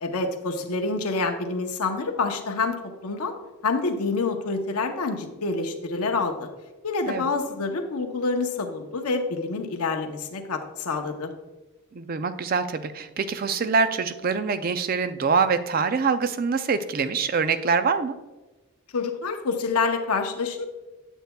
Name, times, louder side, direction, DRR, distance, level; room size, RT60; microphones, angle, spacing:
voice 1, 0.0-3.3 3.6-6.5 6.8-11.3 18.9-20.7, left 3 dB, 90° left, 4 dB, 0.8 m, -27 dB
voice 2, 11.9-18.2, right 5 dB, 40° right, 11 dB, 0.4 m, -24 dB
9.0 x 8.0 x 2.2 m, 1.2 s
head